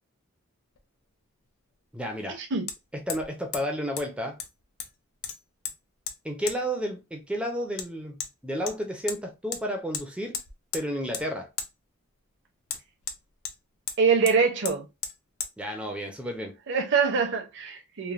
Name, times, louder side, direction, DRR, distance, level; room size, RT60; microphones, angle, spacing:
Hammer, 0.8-0.9 2.7-2.8 3.1-3.3 3.5-3.6 4.0-4.1 4.4-4.9 5.2-5.8 6.1-6.2 6.5-6.6 7.8-7.9 8.2-8.3 8.7-9.2 9.5-9.6 9.9-10.1 10.3-10.9 11.1-11.3 11.6-11.7 12.7-13.6 13.9-14.0 14.3-14.4 14.7-14.8 15.0-15.2 15.4-15.5, left 7 dB, 70° left, 0.5 m, -34 dB
voice 1, 1.9-2.4 2.9-4.4 6.2-10.4 10.7-11.5 15.6-16.6, equal, 5° right, 0.4 m, -32 dB
voice 2, 14.0-14.9 16.7-18.1, right 5 dB, 55° right, 0.7 m, -24 dB
3.1 x 2.1 x 2.4 m
head